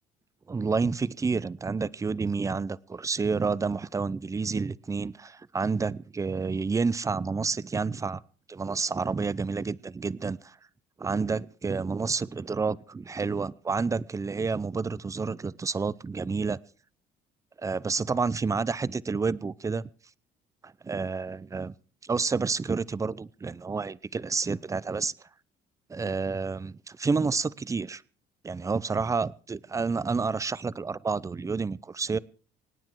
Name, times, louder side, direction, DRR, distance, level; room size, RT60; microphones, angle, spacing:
voice 1, 0.5-8.2 8.5-10.6 11.0-16.6 17.6-19.9 20.6-21.7 22.0-25.1 25.9-28.0 28.4-32.2, right 4 dB, 20° right, 0.6 m, -29 dB
26.0 x 9.7 x 4.6 m
cardioid pair, 110°, 17 cm